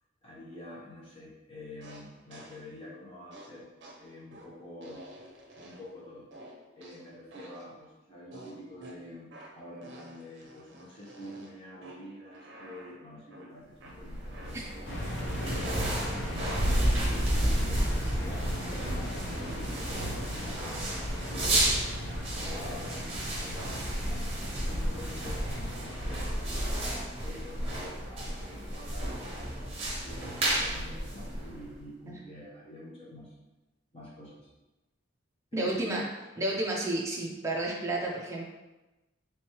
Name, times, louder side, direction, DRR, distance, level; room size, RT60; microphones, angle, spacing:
voice 1, 0.2-3.7 4.0-5.0 5.6-6.3 6.7-16.7 17.1-20.8 21.3-24.3 24.6-26.7 27.2-33.3 33.9-34.5 35.5-35.9, left 1 dB, 30° left, -6 dB, 1.0 m, -47 dB
sound 1, 1.8-2.7 3.3-6.0 6.3-7.7 8.3-16.0 16.3-17.0 17.3-20.4, right 1 dB, 60° right, 0.6 m, -51 dB
sound 2, 13.9-31.8, right 1 dB, 30° right, 0.8 m, -32 dB
sound 3, 14.8-26.3, equal, 65° left, 0.7 m, -38 dB
voice 2, 35.5-36.0 36.4-38.4, right 2 dB, 15° right, -3 dB, 0.4 m, -31 dB
3.3 x 3.1 x 2.9 m, 1.1 s
head